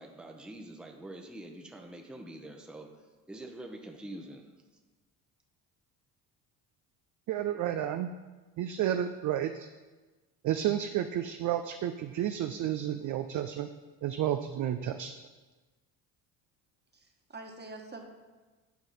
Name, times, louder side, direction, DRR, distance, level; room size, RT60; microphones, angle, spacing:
voice 1, 0.0-4.4, right 1 dB, ahead, 3 dB, 0.9 m, -45 dB
voice 2, 7.3-8.1 8.6-9.7 10.4-13.7 14.0-15.1, right 11 dB, 45° right, 8 dB, 0.5 m, -31 dB
voice 3, 16.9-18.0, right 2 dB, 20° right, 3 dB, 1.5 m, -45 dB
9.2 x 4.7 x 4.2 m, 1.3 s
hypercardioid pair, 65°, 46 cm